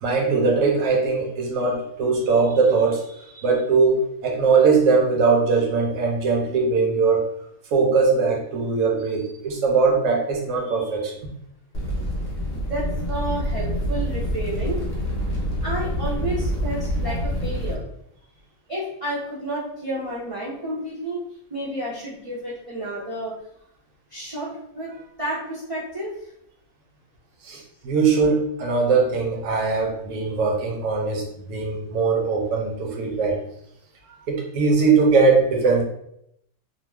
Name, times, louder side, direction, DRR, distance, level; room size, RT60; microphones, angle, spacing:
voice 1, 0.0-7.3 7.7-11.1 27.4-33.4 34.3-35.8, right 4 dB, 65° right, 0 dB, 1.0 m, -21 dB
sound 1, 11.7-17.7, equal, 35° left, 0.7 m, -26 dB
voice 2, 12.5-14.8 15.6-17.8 18.7-21.2 21.5-23.3 24.1-24.9 25.2-26.1, right 1 dB, 45° right, -8 dB, 0.4 m, -30 dB
2.9 x 2.0 x 3.1 m, 0.74 s
omnidirectional pair, 1.6 m